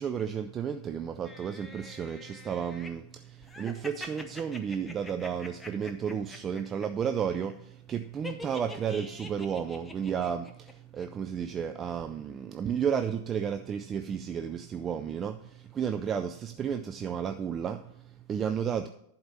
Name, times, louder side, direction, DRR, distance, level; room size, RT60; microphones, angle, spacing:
voice 1, 0.0-18.9, right 7 dB, 25° right, 0.4 m, -33 dB
sound 1, 1.2-2.9 3.4-6.9 7.1-7.5 8.2-10.7 11.0-11.1, left 2 dB, 10° left, 0.9 m, -45 dB
11.0 x 4.3 x 6.7 m
figure-of-eight pair, 90°, 0 cm